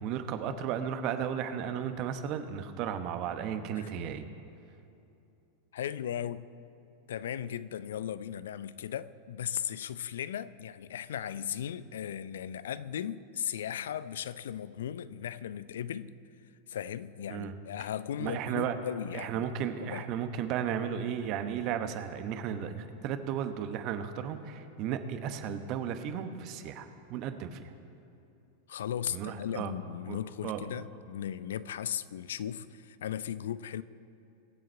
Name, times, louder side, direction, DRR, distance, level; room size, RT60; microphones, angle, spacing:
voice 1, 0.0-4.3 17.3-17.5 18.2-18.8 19.1-27.7 29.1-29.7 30.1-30.6, right 8 dB, 45° right, 1.0 m, -34 dB
voice 2, 5.7-6.5 7.1-16.1 16.7-20.0 28.7-33.8, left 10 dB, 70° left, 0.4 m, -37 dB
22.5 x 7.6 x 4.5 m
hypercardioid pair, 95°, 0 cm